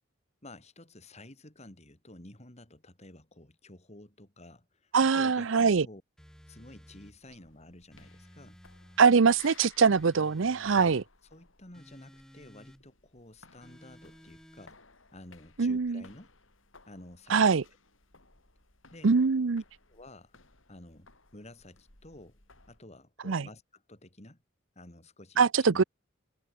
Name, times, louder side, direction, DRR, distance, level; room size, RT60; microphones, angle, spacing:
voice 1, 0.4-6.0 6.5-8.6 10.6-11.0 11.3-14.8 15.1-16.3 16.9-17.5 18.9-19.1 19.9-20.4 20.7-22.4 22.7-24.4 24.7-25.8, left 1 dB, 35° left, 3.3 m, -51 dB
voice 2, 4.9-5.9 9.0-11.0 15.6-16.0 17.3-17.6 19.0-19.6 23.3-23.4 25.4-25.8, right 5 dB, 70° right, 0.6 m, -23 dB
sound 1, 6.2-7.2 7.9-9.1 9.9-11.1 11.7-12.8 13.6-14.7, equal, 5° left, 2.4 m, -55 dB
sound 2, 7.0-22.8, left 4 dB, 75° left, 7.4 m, -60 dB
head